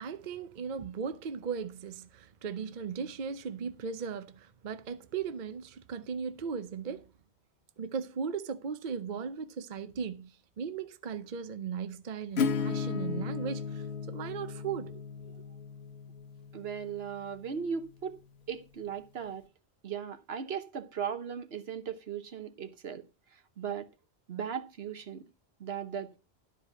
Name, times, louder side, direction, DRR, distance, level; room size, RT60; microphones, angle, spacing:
voice 1, 0.0-7.1 7.8-15.4, right 6 dB, 50° right, 0.7 m, -37 dB
Acoustic guitar / Strum, 12.4-17.9, left 5 dB, 70° left, 1.1 m, -35 dB
voice 2, 16.5-18.2 18.5-19.5 19.8-23.0 23.6-23.9 24.3-25.3 25.6-26.2, right 7 dB, 65° right, 1.2 m, -37 dB
11.5 x 4.9 x 5.8 m
omnidirectional pair, 1.1 m